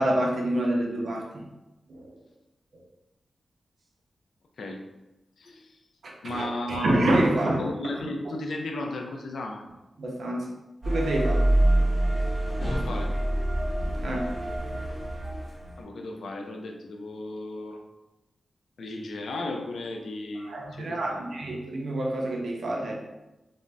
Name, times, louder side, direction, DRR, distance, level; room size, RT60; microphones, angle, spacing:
voice 1, 0.0-1.4 1.9-2.1 6.0-7.9 10.0-10.5 10.9-11.5 13.9-14.3 20.4-22.9, right 1 dB, 70° right, -1 dB, 0.5 m, -27 dB
voice 2, 5.4-5.8 6.2-7.0 7.6-9.6 12.6-13.1 15.8-17.8 18.8-21.3, left 2 dB, 85° left, 3 dB, 0.4 m, -35 dB
sound 1, 10.8-15.8, right 1 dB, 35° right, 0.9 m, -26 dB
2.5 x 2.0 x 3.3 m, 1.0 s
wide cardioid pair, 140°, 0 cm